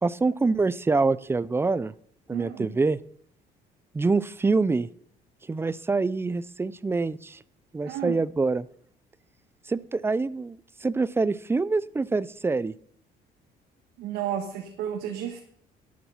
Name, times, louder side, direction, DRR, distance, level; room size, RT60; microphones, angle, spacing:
voice 1, 0.0-1.9 2.3-3.0 3.9-4.9 5.5-7.4 7.7-8.7 9.7-12.7, right 3 dB, 15° right, 19 dB, 0.4 m, -25 dB
voice 2, 2.3-2.7 7.8-8.2 14.0-15.4, right 10 dB, 85° right, 2 dB, 1.6 m, -32 dB
11.5 x 8.6 x 5.6 m, 0.63 s
cardioid pair, 110°, 17 cm